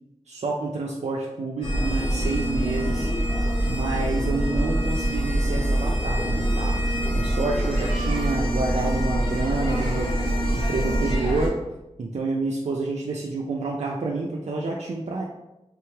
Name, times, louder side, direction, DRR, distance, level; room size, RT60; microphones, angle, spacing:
voice 1, 0.3-3.1 3.7-10.1 10.5-11.6 12.0-15.2, right 3 dB, 70° right, -2 dB, 0.5 m, -29 dB
sound 1, 1.6-11.5, right 1 dB, 50° left, 1.3 m, -24 dB
3.7 x 3.0 x 3.4 m, 0.97 s
wide cardioid pair, 55°, 12 cm